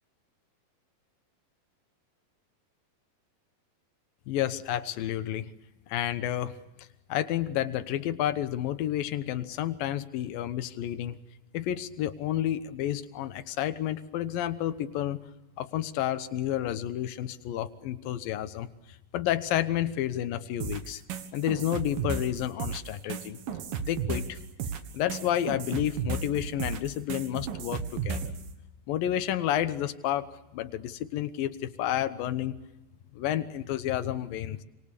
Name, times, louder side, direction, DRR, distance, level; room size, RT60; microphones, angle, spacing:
voice 1, 4.3-5.5 5.9-6.5 7.1-11.2 11.5-15.2 15.6-18.7 19.1-21.0 21.3-23.4 23.8-24.4 24.9-28.3 28.9-32.6 33.1-34.6, left 12 dB, 80° left, 10 dB, 2.8 m, -30 dB
sound 1, 20.6-28.4, right 6 dB, 75° right, 3.4 m, -34 dB
26.5 x 26.0 x 6.8 m, 0.98 s
omnidirectional pair, 4.1 m